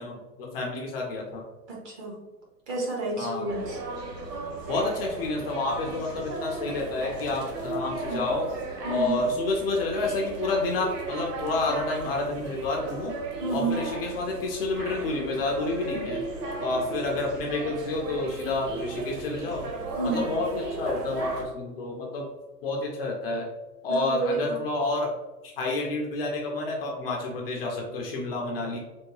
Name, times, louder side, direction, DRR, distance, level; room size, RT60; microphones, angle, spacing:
voice 1, 0.0-1.4 3.2-3.5 4.7-8.4 8.9-13.1 13.5-16.2 16.6-19.8 20.1-22.2 22.6-23.4 23.8-25.1 25.4-28.8, left 2 dB, 40° left, 0 dB, 0.5 m, -29 dB
voice 2, 1.7-2.2 2.7-3.8 8.1-8.3 8.8-9.3 13.4-13.9 19.9-20.3 23.9-24.6, right 3 dB, 30° right, -3 dB, 1.1 m, -30 dB
sound 1, 3.5-21.4, right 2 dB, 85° right, 0.8 m, -36 dB
3.4 x 2.2 x 3.1 m, 1.1 s
figure-of-eight pair, 115°, 47 cm